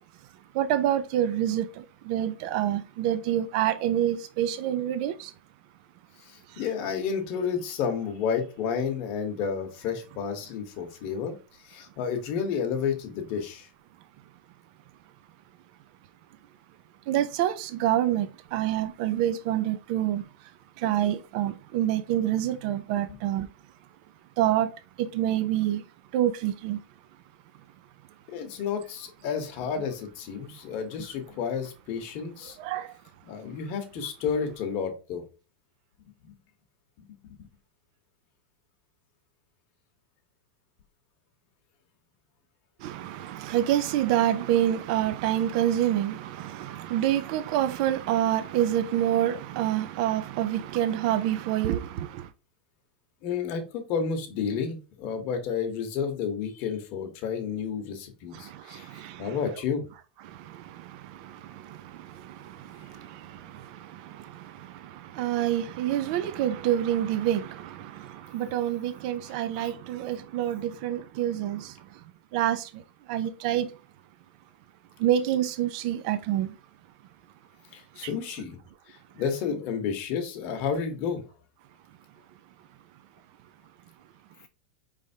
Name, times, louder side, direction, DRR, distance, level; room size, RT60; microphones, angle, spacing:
voice 1, 0.5-5.3 17.1-20.2 20.8-23.5 24.4-24.7 25.0-25.8 26.1-26.8 32.6-32.9 42.8-52.3 58.3-59.4 60.5-61.8 62.2-62.4 62.7-63.4 64.0-64.5 65.1-71.7 72.3-72.7 73.1-73.7 75.0-76.5, right 11 dB, 45° right, 0.4 m, -27 dB
voice 2, 6.3-11.3 11.6-13.7 23.1-23.2 28.3-32.6 33.2-35.2 36.3-36.4 53.2-59.9 69.3-69.4 77.7-78.6 78.9-81.2, left 6 dB, 40° left, 1.0 m, -31 dB
4.9 x 3.3 x 2.7 m
supercardioid pair, 160°, 5 cm